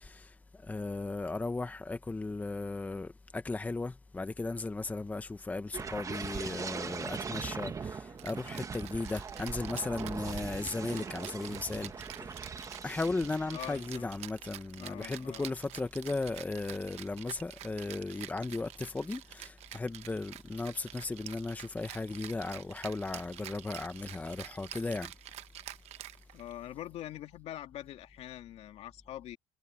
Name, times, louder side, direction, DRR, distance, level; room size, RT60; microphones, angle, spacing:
voice 1, 0.0-12.4 12.8-25.1, left 3 dB, 15° left, 1.0 m, -36 dB
sound 1, 5.7-14.2 14.6-14.9, right 5 dB, 30° right, 1.4 m, -41 dB
Rattle (instrument), 8.2-26.7, right 14 dB, 70° right, 1.1 m, -48 dB
voice 2, 13.5-14.1 14.7-15.5 26.3-29.4, left 13 dB, 65° left, 2.3 m, -44 dB
cardioid pair, 115°, 11 cm